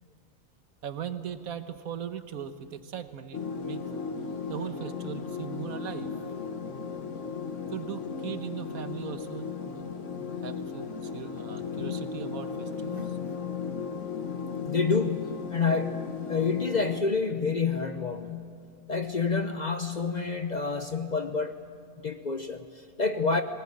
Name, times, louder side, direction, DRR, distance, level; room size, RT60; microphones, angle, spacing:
voice 1, 0.8-3.8 4.5-6.1 7.7-13.3, right 9 dB, 80° right, 11 dB, 1.5 m, -39 dB
sound 1, 3.3-17.0, left 5 dB, 60° left, 1.5 m, -36 dB
voice 2, 14.6-18.5 18.9-21.6 22.0-23.4, left 4 dB, 40° left, 8 dB, 0.7 m, -28 dB
20.0 x 18.5 x 9.9 m, 2.4 s
omnidirectional pair, 1.5 m